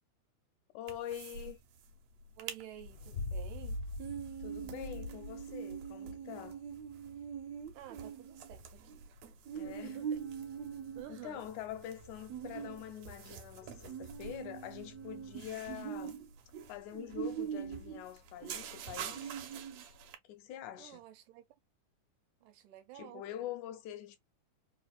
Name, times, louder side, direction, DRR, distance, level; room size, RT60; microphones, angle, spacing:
voice 1, 0.7-1.6 4.4-6.6 9.5-10.0 11.1-16.2 16.7-19.4 20.3-21.0 23.0-24.2, left 11 dB, 80° left, 2.0 m, -45 dB
sound 1, 0.9-1.5 1.8-1.9 2.2-2.6 3.0-20.2, right 8 dB, 75° right, 1.7 m, -43 dB
voice 2, 2.4-3.8 7.7-9.0 9.6-10.2 11.0-11.5 20.8-21.5 22.4-23.2, right 13 dB, 90° right, 2.2 m, -51 dB
sound 2, 2.7-5.6, left 2 dB, 65° left, 0.9 m, -42 dB
sound 3, 9.6-15.6, right 1 dB, 50° right, 0.7 m, -60 dB
4.8 x 2.4 x 2.3 m
omnidirectional pair, 3.6 m